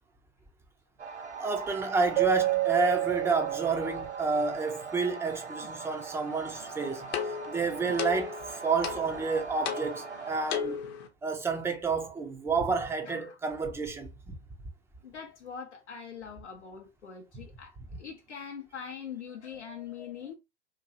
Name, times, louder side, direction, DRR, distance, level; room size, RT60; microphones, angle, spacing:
sound 1, 1.0-10.6, right 4 dB, 85° right, 0.9 m, -41 dB
voice 1, 1.4-7.1 7.5-10.8 11.2-14.4, right 4 dB, 10° right, 0.4 m, -30 dB
Keyboard (musical), 2.2-4.6, right 19 dB, 50° right, 0.7 m, -29 dB
sound 2, 6.5-11.1, left 8 dB, 30° left, 0.6 m, -37 dB
voice 2, 13.0-13.4 15.0-20.3, left 7 dB, 85° left, 0.6 m, -43 dB
2.9 x 2.6 x 2.6 m
figure-of-eight pair, 100°, 34 cm